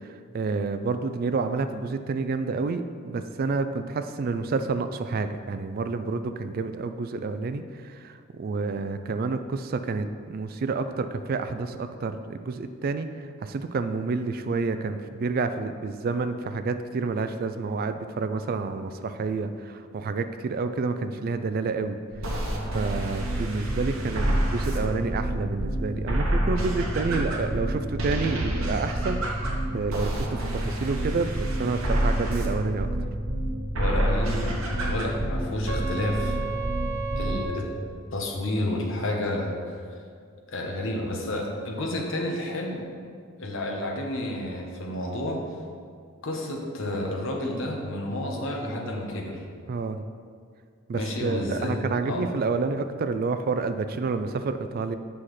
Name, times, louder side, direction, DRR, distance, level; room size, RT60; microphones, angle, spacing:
voice 1, 0.3-13.1 13.4-22.0 22.2-22.4 22.7-29.2 29.7-32.9 49.7-50.0 50.9-55.0, right 4 dB, 45° right, 9 dB, 0.3 m, -29 dB
sound 1, 22.1-37.4, right 1 dB, 65° right, 1.1 m, -28 dB
voice 2, 33.8-36.4 37.2-37.7 38.1-39.8 40.5-42.9 43.4-45.4 46.2-49.4 50.9-52.3, left 1 dB, 65° left, 1 dB, 1.0 m, -30 dB
8.6 x 5.7 x 3.2 m, 2.1 s
head